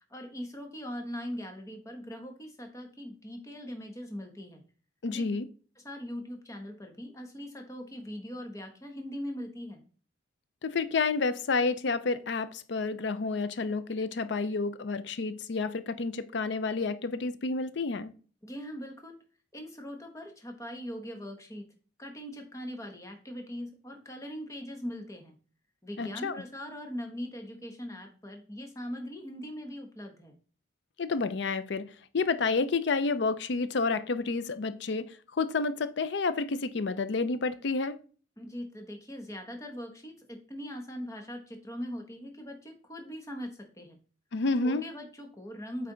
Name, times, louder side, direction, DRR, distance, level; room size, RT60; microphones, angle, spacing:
voice 1, 0.1-4.6 5.1-5.3 5.8-9.8 18.4-19.2 19.5-21.7 22.0-25.4 25.8-30.4 38.4-44.0 44.6-45.9, equal, 15° left, 1.1 m, -41 dB
voice 2, 5.0-5.5 10.6-18.1 26.0-26.4 31.0-31.9 32.1-38.0 44.3-44.8, left 4 dB, 65° left, 0.5 m, -30 dB
8.4 x 3.4 x 3.8 m
head